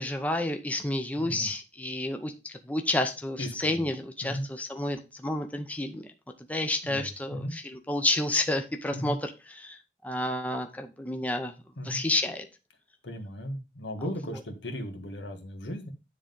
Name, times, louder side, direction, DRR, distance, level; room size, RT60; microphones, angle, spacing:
voice 1, 0.0-6.0 6.5-7.6 7.9-11.5 11.8-12.5, left 1 dB, 10° left, 5 dB, 0.7 m, -30 dB
voice 2, 1.2-1.5 3.4-3.9 4.2-4.4 6.8-7.5 8.9-9.1 11.8-12.0 13.0-15.9, equal, 85° left, 4 dB, 1.7 m, -36 dB
9.9 x 3.8 x 5.3 m, 0.29 s
head